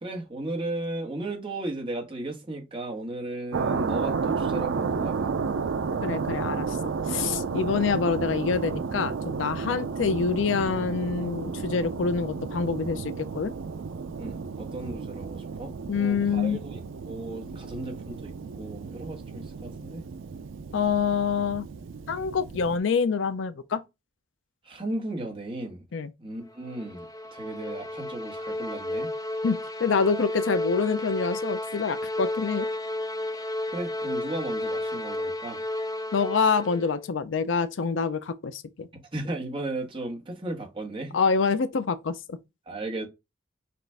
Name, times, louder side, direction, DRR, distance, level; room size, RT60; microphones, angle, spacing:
voice 1, 0.0-5.3 9.7-9.8 14.2-16.8 17.1-20.0 24.6-25.8 26.2-29.1 33.3-33.5 33.7-35.6 39.1-41.2 42.7-43.1, right 2 dB, 30° right, 1.4 m, -35 dB
sound 1, 3.5-22.8, right 5 dB, 90° right, 0.5 m, -32 dB
voice 2, 6.0-13.5 15.9-16.6 20.7-21.7 22.1-23.8 25.9-26.1 29.4-32.7 36.1-38.9 41.1-42.4, left 5 dB, 80° left, 0.5 m, -26 dB
sound 2, 26.5-37.1, left 1 dB, 20° left, 0.4 m, -32 dB
5.9 x 2.5 x 3.4 m
head